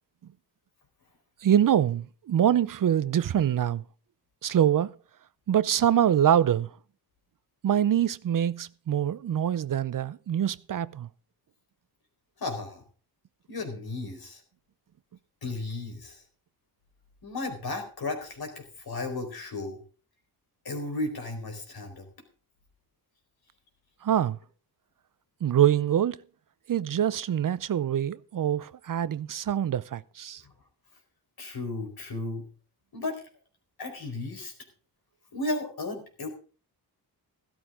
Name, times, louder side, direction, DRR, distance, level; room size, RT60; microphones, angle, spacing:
voice 1, 1.4-3.8 4.4-4.9 5.5-6.7 7.6-11.1 24.0-24.4 25.4-26.2 26.7-30.4, right 10 dB, 55° right, 0.6 m, -24 dB
voice 2, 12.4-12.8 13.5-14.4 15.4-16.2 17.2-19.8 20.6-22.1 31.4-32.4 32.9-33.2 33.8-34.5 35.3-36.3, left 2 dB, 65° left, 4.4 m, -34 dB
14.5 x 12.5 x 3.7 m
cardioid pair, 85°, 39 cm